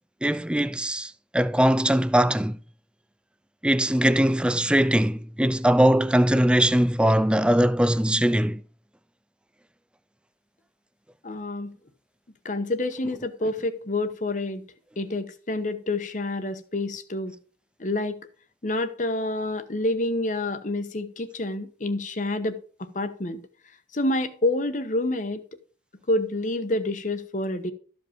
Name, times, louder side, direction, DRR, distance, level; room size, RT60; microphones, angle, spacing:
voice 1, 0.2-2.6 3.6-8.6, right 1 dB, 5° right, 0.3 m, -21 dB
voice 2, 11.2-11.7 12.4-14.6 15.0-17.3 17.8-18.2 18.6-23.4 23.9-25.4 26.1-27.7, left 2 dB, 45° left, 1.0 m, -28 dB
13.5 x 5.3 x 5.2 m
head